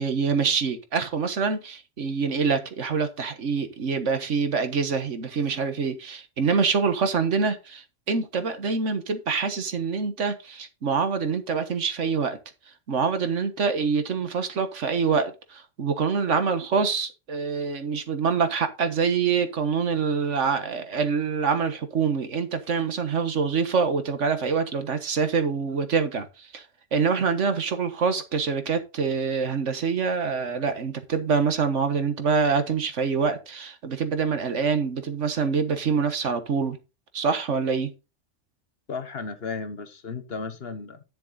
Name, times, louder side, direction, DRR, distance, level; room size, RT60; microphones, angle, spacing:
voice 1, 0.0-12.4 12.9-26.6 26.9-36.8 37.1-37.9, right 5 dB, 85° right, 1.6 m, -25 dB
voice 2, 38.9-41.0, left 4 dB, 55° left, 1.4 m, -34 dB
10.5 x 6.8 x 4.0 m
omnidirectional pair, 1.2 m